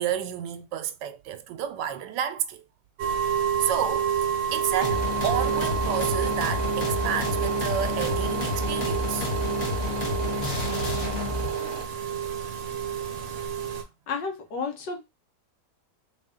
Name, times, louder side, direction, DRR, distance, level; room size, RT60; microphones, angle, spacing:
voice 1, 0.0-2.6 3.6-9.3, right 10 dB, 85° right, 1.2 m, -31 dB
sound 1, 3.0-13.8, right 8 dB, 65° right, 1.1 m, -29 dB
sound 2, 4.8-11.5, left 3 dB, 45° left, 1.1 m, -30 dB
sound 3, 4.9-11.8, right 3 dB, 40° right, 0.6 m, -37 dB
voice 2, 14.1-15.0, left 4 dB, 85° left, 1.5 m, -31 dB
3.8 x 2.4 x 3.6 m
omnidirectional pair, 1.9 m